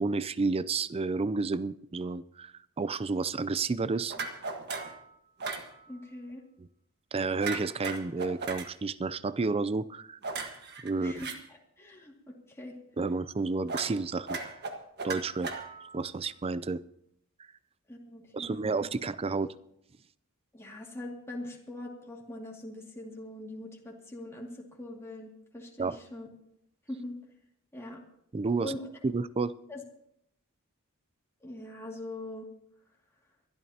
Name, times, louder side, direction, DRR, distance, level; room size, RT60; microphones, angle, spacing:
voice 1, 0.0-4.2 6.6-6.7 7.1-10.2 10.8-11.2 13.0-14.5 15.0-15.6 15.9-16.8 18.3-19.5 25.8-26.0 28.3-28.8 29.0-29.5, right 4 dB, 25° right, 16 dB, 0.4 m, -31 dB
sound 1, 4.1-5.0 5.4-5.7 7.4-8.7 10.2-11.4 13.7-14.0 14.3-16.0, right 4 dB, 50° right, 1.5 m, -36 dB
voice 2, 5.9-6.4 11.0-12.8 17.9-18.7 20.5-26.3 26.9-27.2 27.7-28.0 28.6-28.9 29.7-29.8 31.4-32.5, left 1 dB, 10° left, -2 dB, 2.3 m, -42 dB
25.0 x 12.5 x 2.9 m, 0.74 s
head